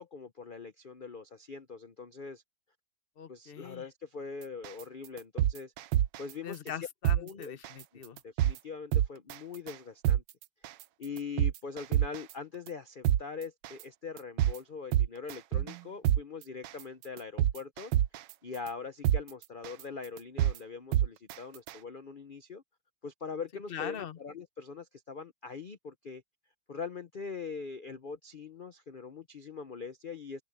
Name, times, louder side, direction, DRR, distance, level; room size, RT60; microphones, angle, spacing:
voice 1, 0.0-2.4 3.3-5.7 6.2-6.7 7.2-7.6 8.2-10.2 10.6-10.7 11.0-17.9 18.4-22.6 23.0-26.2 26.7-30.4, left 5 dB, 80° left, 0.4 m, -42 dB
voice 2, 3.2-3.9 6.4-8.2 23.7-24.2, left 9 dB, 40° left, 0.8 m, -41 dB
sound 1, 4.6-4.8 5.2-6.3 6.7-6.8 7.0-7.2 7.6-7.8 8.2-8.6 8.9-9.3 9.7-9.8 10.0-10.2 10.6-10.8 11.2-12.3 12.7-12.8 13.0-13.2 13.6-13.8 14.2-14.6 14.9-15.8 16.0-16.2 16.6-16.8 17.2-18.3 18.7-18.8 19.0-19.2 19.6-19.8 20.2-20.6 20.9-21.3 21.7-21.8, right 12 dB, 75° right, 1.3 m, -26 dB
omnidirectional pair, 2.0 m